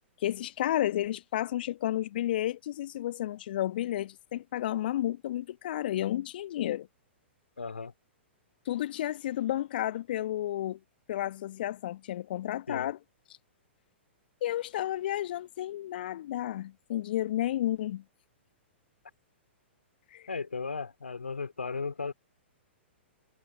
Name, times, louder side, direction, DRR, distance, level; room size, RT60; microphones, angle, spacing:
voice 1, 0.2-6.9 8.7-10.8 11.1-13.0 14.4-18.0 20.1-20.3, left 13 dB, 50° left, 1.3 m, -32 dB
voice 2, 7.6-7.9 12.7-12.9 20.3-22.1, left 4 dB, 75° left, 2.8 m, -35 dB
figure-of-eight pair, 110°, 6 cm